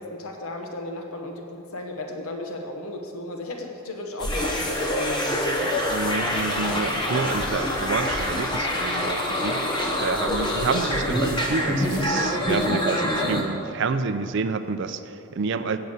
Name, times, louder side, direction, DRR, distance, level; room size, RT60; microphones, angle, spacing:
voice 1, 0.0-5.8 10.0-10.4, left 2 dB, 80° left, 3 dB, 0.9 m, -35 dB
sound 1, 4.2-13.4, left 1 dB, 20° left, 1.0 m, -25 dB
voice 2, 5.9-15.8, right 4 dB, 55° right, 10 dB, 0.4 m, -29 dB
8.6 x 6.8 x 7.8 m, 2.8 s
head